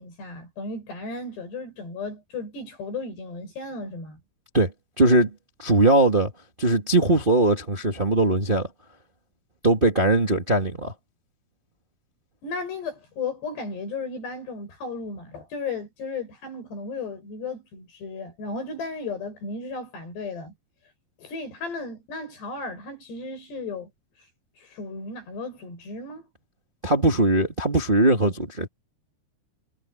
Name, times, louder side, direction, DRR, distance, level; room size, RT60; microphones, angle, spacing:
voice 1, 0.0-4.2 12.4-20.5 21.2-23.9 24.6-26.3, left 3 dB, 85° left, 10.0 m, -35 dB
voice 2, 4.5-5.3 5.6-6.3 6.6-8.7 9.6-10.9 26.8-28.7, right 2 dB, 25° right, 1.2 m, -20 dB
omnidirectional pair, 4.7 m